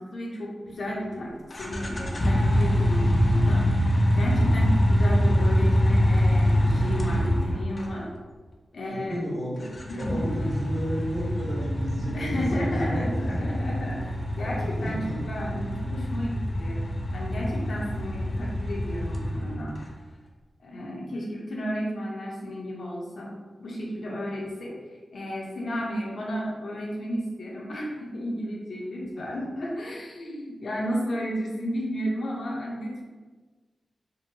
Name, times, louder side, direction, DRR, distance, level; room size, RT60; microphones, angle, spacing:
voice 1, 0.0-8.1 8.7-9.2 9.9-10.3 12.1-16.8 17.1-19.9 20.6-24.8 25.1-33.0, equal, 75° left, -4 dB, 0.7 m, -33 dB
sound 1, 1.5-7.9 9.6-19.7, equal, 40° left, 0.4 m, -24 dB
voice 2, 8.9-13.0 14.8-15.2 29.3-29.4, equal, 50° right, -7 dB, 1.2 m, -32 dB
2.7 x 2.2 x 2.7 m, 1.4 s
cardioid pair, 60°, 0 cm